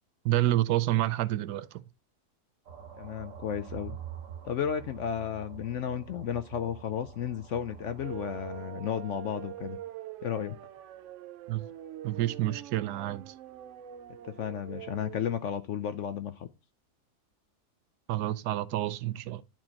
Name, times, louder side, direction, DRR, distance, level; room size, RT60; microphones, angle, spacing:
voice 1, 0.2-1.8 11.5-11.7 12.0-13.3 18.1-19.4, right 14 dB, 85° right, 1.2 m, -28 dB
sound 1, 2.7-8.7, right 8 dB, 55° right, 1.7 m, -46 dB
voice 2, 3.0-4.0 4.4-9.8 10.2-10.6 14.2-16.5, left 8 dB, 65° left, 0.8 m, -33 dB
sound 2, 8.0-15.2, right 12 dB, 70° right, 0.7 m, -44 dB
11.0 x 4.5 x 2.9 m
omnidirectional pair, 1.7 m